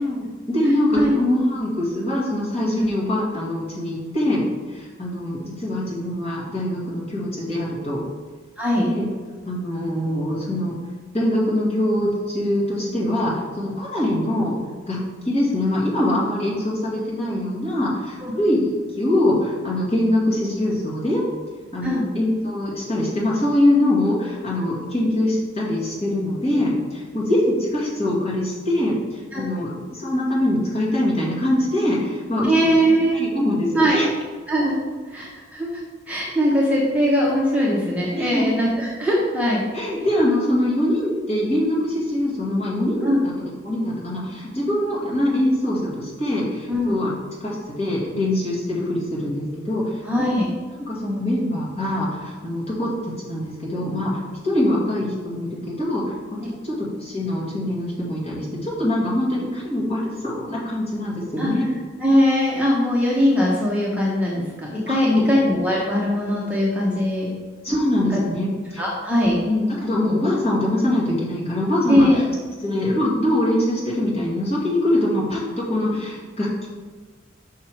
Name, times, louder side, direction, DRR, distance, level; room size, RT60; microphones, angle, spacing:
voice 1, 0.0-4.4 4.7-8.0 8.8-9.1 9.4-10.7 11.1-14.5 14.9-15.0 15.3-18.7 19.0-21.2 21.7-32.5 33.1-34.1 38.2-38.4 39.7-43.3 43.6-47.1 47.4-50.2 50.9-54.1 54.4-56.0 56.6-61.7 64.9-65.2 67.6-68.8 69.4-72.2 72.6-76.7, left 1 dB, 30° left, -6 dB, 2.1 m, -23 dB
voice 2, 8.6-8.9 18.2-18.3 21.8-22.0 29.3-29.4 32.4-33.1 33.7-34.0 34.5-34.8 35.1-35.8 36.1-39.6 43.0-43.2 46.7-46.9 50.0-50.5 61.4-61.5 62.0-67.3 68.1-68.2 68.8-69.4 71.9-72.2, equal, 5° right, -5 dB, 0.9 m, -20 dB
6.0 x 5.5 x 4.6 m, 1.5 s
head